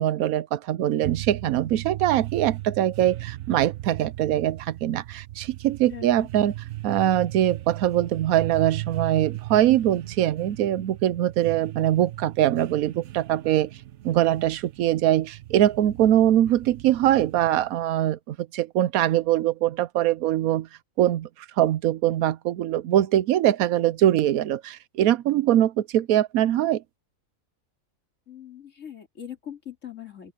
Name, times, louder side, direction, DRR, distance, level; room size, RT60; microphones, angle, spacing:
voice 1, 0.0-6.5 6.8-13.7 14.0-20.7 21.0-21.3 21.6-26.8, right 12 dB, 85° right, 1.1 m, -22 dB
sound 1, 1.0-17.8, right 15 dB, 65° right, 0.9 m, -37 dB
voice 2, 5.9-6.3 28.3-30.3, left 9 dB, 60° left, 3.0 m, -41 dB
omnidirectional pair, 1.5 m